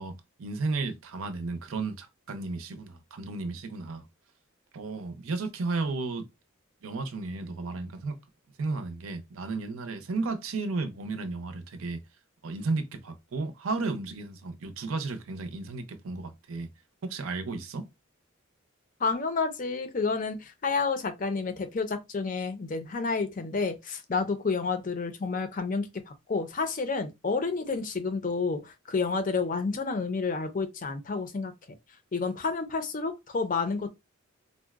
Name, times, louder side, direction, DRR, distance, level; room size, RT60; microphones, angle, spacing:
voice 1, 0.0-4.0 4.7-6.3 6.8-8.2 8.6-12.0 12.4-16.7 17.0-17.9, right 3 dB, 80° right, 0.5 m, -33 dB
voice 2, 19.0-31.5 32.1-33.9, left 4 dB, 40° left, 0.5 m, -30 dB
3.8 x 2.0 x 2.3 m
head